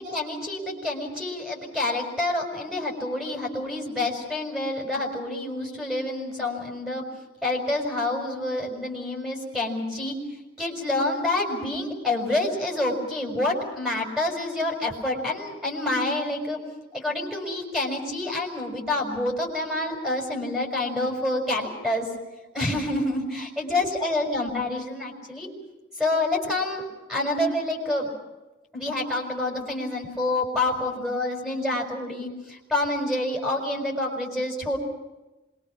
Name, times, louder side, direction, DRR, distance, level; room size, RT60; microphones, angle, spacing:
voice 1, 0.0-7.0 7.4-10.1 10.6-16.6 16.9-22.1 22.5-25.5 26.0-26.8 27.1-28.1 28.7-34.8, left 2 dB, 5° right, 1 dB, 5.9 m, -27 dB
26.5 x 23.0 x 6.1 m, 1.1 s
head